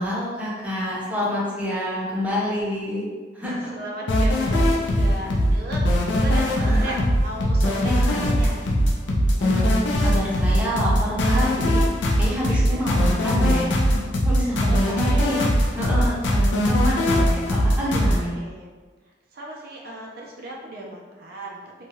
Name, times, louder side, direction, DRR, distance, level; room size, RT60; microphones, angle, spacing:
voice 1, 0.0-3.1 3.3-3.5 6.6-7.0 8.0-8.3 9.4-11.8 12.2-15.5 15.8-18.3, left 1 dB, 10° right, -6 dB, 0.7 m, -27 dB
voice 2, 3.7-8.5 12.3-13.0 14.4-15.4 18.4-18.7 19.3-21.6, right 1 dB, 55° right, -3 dB, 0.4 m, -36 dB
sound 1, 4.1-18.2, equal, 70° left, 0.5 m, -20 dB
2.8 x 2.2 x 2.9 m, 1.4 s
head